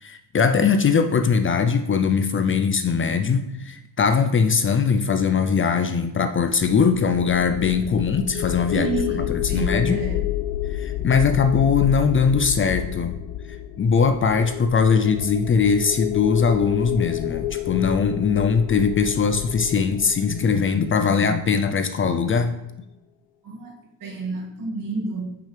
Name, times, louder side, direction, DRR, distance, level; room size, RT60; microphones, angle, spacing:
voice 1, 0.0-8.9 9.3-10.0 10.7-13.2 13.8-22.5, left 5 dB, 30° left, 8 dB, 0.6 m, -21 dB
sound 1, 6.5-21.6, left 13 dB, 90° left, 0.5 m, -30 dB
voice 2, 8.7-10.3 23.4-23.8 24.0-25.4, right 4 dB, 55° right, -1 dB, 2.4 m, -29 dB
8.3 x 6.1 x 3.4 m, 0.91 s
supercardioid pair, 85°, 39 cm